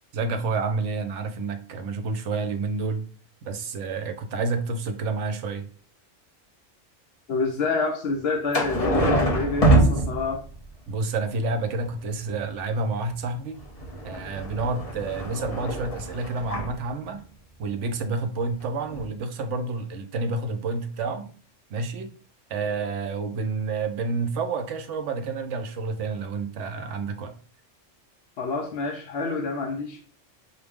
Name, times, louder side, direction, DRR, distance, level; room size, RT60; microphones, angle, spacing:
voice 1, 0.1-3.1 3.4-5.7 9.7-9.9 10.9-13.6 14.0-17.2 17.6-21.3 21.7-22.1 22.5-27.3, right 3 dB, 70° right, 7 dB, 1.0 m, -29 dB
voice 2, 7.3-10.4 28.4-30.0, left 3 dB, 60° left, 2 dB, 0.8 m, -28 dB
sound 1, 8.5-10.7 13.5-16.8 18.6-18.7 18.9-19.1, right 1 dB, 30° left, 1.0 m, -24 dB
6.1 x 2.2 x 3.5 m, 0.42 s
omnidirectional pair, 1.3 m